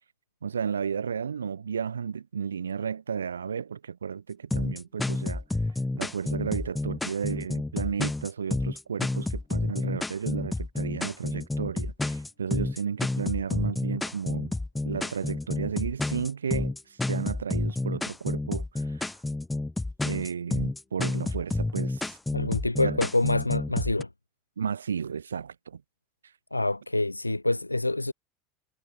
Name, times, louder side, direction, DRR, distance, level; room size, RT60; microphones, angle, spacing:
voice 1, 0.4-5.4 5.9-14.5 14.9-19.1 20.0-22.2 22.8-23.0 24.6-25.8, right 7 dB, 75° right, 0.4 m, -33 dB
sound 1, 4.5-24.0, left 2 dB, 10° left, 0.6 m, -30 dB
voice 2, 22.3-24.1 26.5-28.1, left 2 dB, 90° left, 0.3 m, -26 dB
figure-of-eight pair, 75°, 0 cm